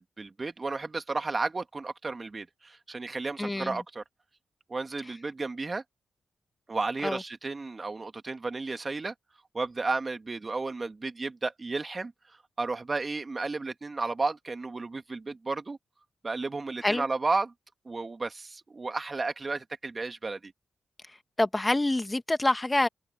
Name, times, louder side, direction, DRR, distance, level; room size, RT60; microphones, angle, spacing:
voice 1, 0.0-4.0 4.7-5.8 6.7-9.1 9.5-12.1 12.6-15.8 16.2-17.5 17.9-20.5, right 3 dB, 40° right, 2.4 m, -33 dB
voice 2, 3.4-3.8 7.0-7.2 16.8-17.0 21.4-22.9, left 2 dB, 20° left, 1.5 m, -26 dB
supercardioid pair, 45°, 0 cm